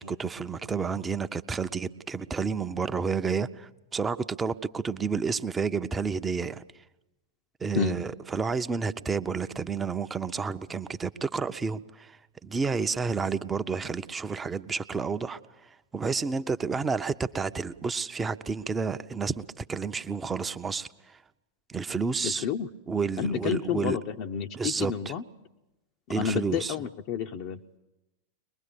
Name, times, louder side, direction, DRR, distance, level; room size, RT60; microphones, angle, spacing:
voice 1, 0.0-6.6 7.6-15.4 15.9-21.2 21.7-22.5 22.9-24.0 24.5-25.1 26.1-26.8, right 5 dB, 15° right, 10 dB, 0.7 m, -30 dB
voice 2, 22.2-22.7 23.2-25.2 26.2-27.6, left 8 dB, 45° left, 2 dB, 0.7 m, -30 dB
23.0 x 21.0 x 6.9 m, 0.99 s
figure-of-eight pair, 90°, 0 cm